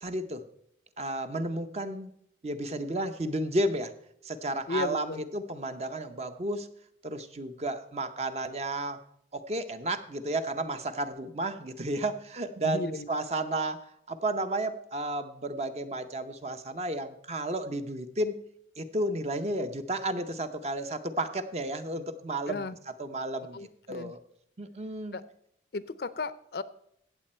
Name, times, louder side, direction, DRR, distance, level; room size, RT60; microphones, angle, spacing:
voice 1, 0.0-0.4 1.0-2.1 2.4-3.9 4.2-6.7 7.0-9.0 9.3-18.4 18.8-24.2 24.6-25.2, right 1 dB, 35° right, 9 dB, 0.7 m, -32 dB
voice 2, 4.7-5.2 12.6-13.1 22.5-22.8 23.5-24.1 25.1-25.2 25.7-26.6, left 3 dB, 55° left, 16 dB, 0.5 m, -34 dB
16.5 x 7.4 x 4.3 m, 0.73 s
head